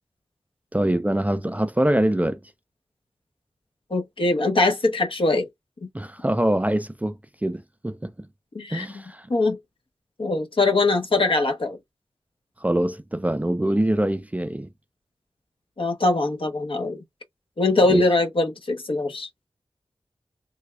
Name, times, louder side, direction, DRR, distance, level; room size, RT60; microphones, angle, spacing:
voice 1, 0.7-2.4 5.9-8.3 8.7-9.3 12.6-14.7 17.9-18.0, right 1 dB, 15° right, 0.4 m, -24 dB
voice 2, 3.9-5.5 8.5-8.9 9.3-9.6 10.2-11.8 15.8-17.0 17.6-19.3, left 2 dB, 60° left, 0.9 m, -22 dB
3.4 x 2.3 x 3.2 m
cardioid pair, 50°, 10 cm